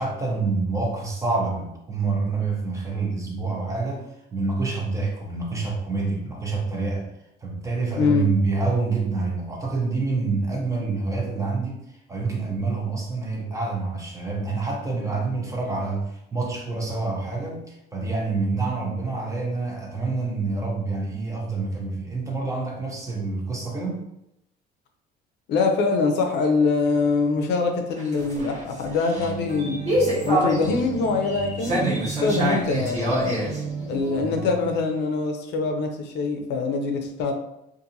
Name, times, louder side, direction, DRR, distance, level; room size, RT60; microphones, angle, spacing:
voice 1, 0.0-7.1 7.4-24.0, right 3 dB, 15° right, -1 dB, 0.6 m, -27 dB
voice 2, 8.0-8.3 25.5-29.8 30.3-31.9 32.2-33.4 33.9-37.3, left 4 dB, 70° left, 4 dB, 0.5 m, -24 dB
sound 1, 27.9-34.7, right 1 dB, 40° right, 1.2 m, -27 dB
2.6 x 2.5 x 2.6 m, 0.82 s
cardioid pair, 130°, 18 cm